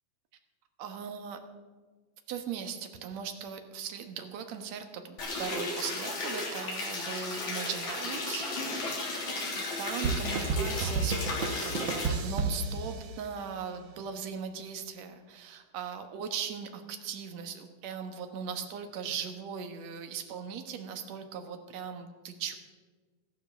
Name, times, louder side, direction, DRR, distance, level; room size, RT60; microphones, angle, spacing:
voice 1, 0.8-1.4 2.3-9.0 9.3-9.5 9.8-22.6, right 7 dB, 65° right, 6 dB, 2.3 m, -39 dB
sound 1, 5.2-12.1, left 2 dB, 70° left, 4.6 m, -34 dB
sound 2, 10.0-13.6, right 3 dB, 80° right, 1.0 m, -32 dB
14.0 x 12.5 x 6.8 m, 1.4 s
omnidirectional pair, 3.6 m